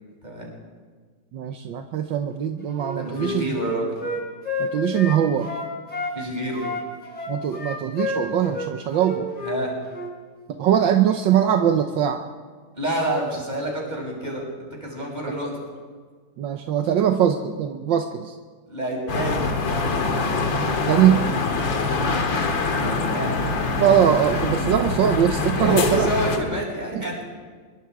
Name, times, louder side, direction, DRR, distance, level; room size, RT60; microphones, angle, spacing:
voice 1, 1.3-3.5 4.6-5.5 7.3-9.3 10.6-12.2 16.4-18.4 20.9-21.3 23.8-26.1, right 9 dB, 75° right, 6 dB, 1.6 m, -21 dB
Wind instrument woodwind instrument, 2.7-6.2 6.5-9.6 9.9-10.1, left 2 dB, 20° left, 4.4 m, -30 dB
voice 2, 2.9-4.0 6.1-6.6 9.4-9.7 12.8-15.6 18.7-19.4 22.8-23.4 25.5-27.2, right 1 dB, 20° right, -2 dB, 6.4 m, -28 dB
sound 1, 19.1-26.4, left 3 dB, 75° left, 2.5 m, -24 dB
24.5 x 23.0 x 4.8 m, 1.5 s
omnidirectional pair, 2.1 m